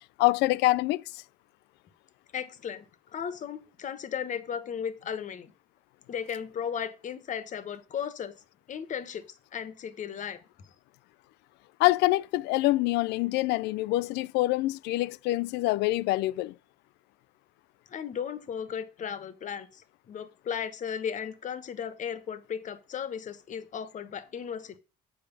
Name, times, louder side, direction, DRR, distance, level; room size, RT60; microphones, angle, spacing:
voice 1, 0.2-1.0 11.8-16.5, left 18 dB, 85° left, 0.4 m, -25 dB
voice 2, 2.3-2.8 3.1-5.5 6.1-8.3 8.7-9.2 9.5-10.4 17.9-24.8, left 8 dB, 45° left, 1.1 m, -35 dB
7.1 x 4.8 x 6.9 m
cardioid pair, 110°, 17 cm